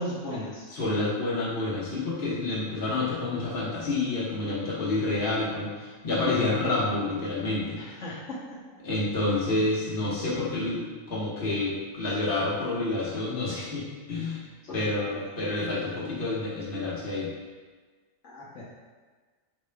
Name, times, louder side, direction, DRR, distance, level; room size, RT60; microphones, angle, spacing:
voice 1, 0.0-0.7 7.7-8.6 14.6-15.2 18.2-18.6, equal, 70° left, -8 dB, 1.1 m, -37 dB
voice 2, 0.7-7.8 8.8-14.4 14.7-17.3, left 2 dB, 45° left, -7 dB, 1.2 m, -28 dB
4.9 x 4.2 x 2.2 m, 1.4 s
omnidirectional pair, 1.3 m